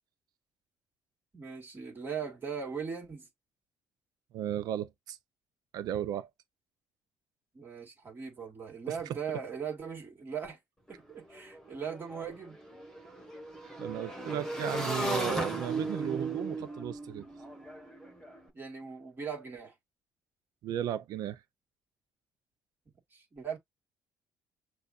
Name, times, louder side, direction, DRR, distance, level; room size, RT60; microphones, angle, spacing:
voice 1, 1.3-3.3 7.5-10.6 10.9-12.6 18.5-19.7 23.1-23.6, right 6 dB, 30° right, 2.2 m, -39 dB
voice 2, 4.3-5.2 5.7-6.3 13.8-17.3 20.6-21.4, right 10 dB, 70° right, 0.7 m, -35 dB
Motorcycle / Engine, 10.9-11.0 11.2-18.4, right 2 dB, 10° left, 1.6 m, -36 dB
6.6 x 2.5 x 2.6 m
cardioid pair, 110°, 7 cm